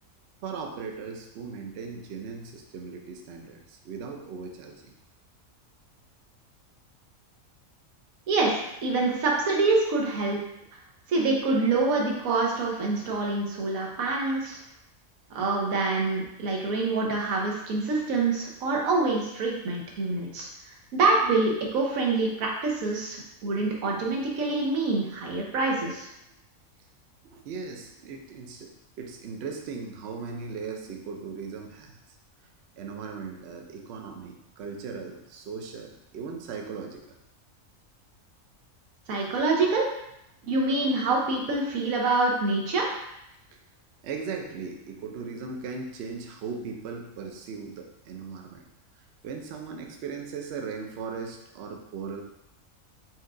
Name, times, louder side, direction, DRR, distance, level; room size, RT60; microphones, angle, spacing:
voice 1, 0.4-4.9 27.2-28.7 29.0-32.0 32.8-37.0 44.0-48.6 49.2-52.2, right 5 dB, 60° right, 2 dB, 0.7 m, -38 dB
voice 2, 8.8-10.4 11.1-14.6 15.3-26.1 39.1-39.9 40.4-42.9, right 3 dB, 90° right, -2 dB, 1.3 m, -26 dB
4.4 x 2.4 x 3.7 m, 0.82 s
omnidirectional pair, 1.4 m